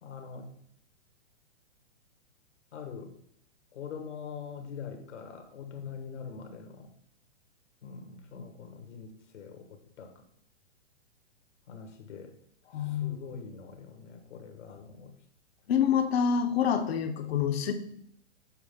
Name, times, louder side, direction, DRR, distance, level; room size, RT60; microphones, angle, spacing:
voice 1, 0.0-0.5 2.7-3.1 3.7-6.9 7.8-10.2 11.7-12.3 12.8-15.1, left 6 dB, 75° left, 6 dB, 1.3 m, -43 dB
voice 2, 12.7-13.3 15.7-17.7, left 7 dB, 55° left, 7 dB, 0.8 m, -27 dB
7.4 x 4.5 x 3.6 m, 0.68 s
hypercardioid pair, 145°, 36 cm